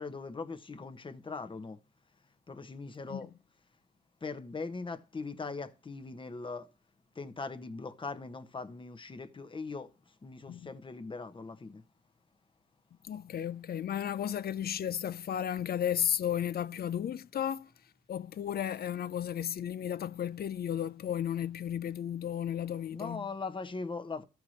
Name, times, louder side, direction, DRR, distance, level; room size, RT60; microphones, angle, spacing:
voice 1, 0.0-1.8 2.5-3.3 4.2-6.7 7.2-9.9 10.2-11.8 22.9-24.2, left 4 dB, 25° left, 1.1 m, -40 dB
voice 2, 13.0-17.7 18.1-23.3, left 9 dB, 50° left, 0.6 m, -34 dB
13.5 x 4.7 x 6.4 m
cardioid pair, 90°, 20 cm